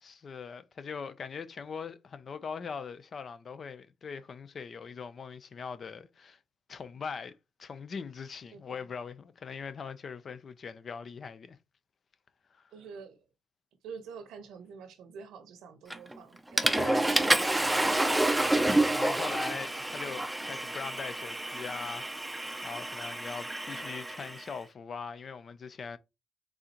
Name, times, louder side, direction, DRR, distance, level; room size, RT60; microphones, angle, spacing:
voice 1, 0.0-6.4 6.7-11.6 12.5-12.6 16.7-17.1 18.5-22.4 22.6-26.0, left 5 dB, 45° left, 0.6 m, -41 dB
voice 2, 8.5-8.9 12.7-13.2 13.8-18.4, right 6 dB, 85° right, 0.9 m, -47 dB
Water / Toilet flush, 15.9-16.2 16.6-24.4, right 1 dB, 10° right, 0.6 m, -29 dB
4.0 x 3.7 x 2.9 m
cardioid pair, 90°, 0 cm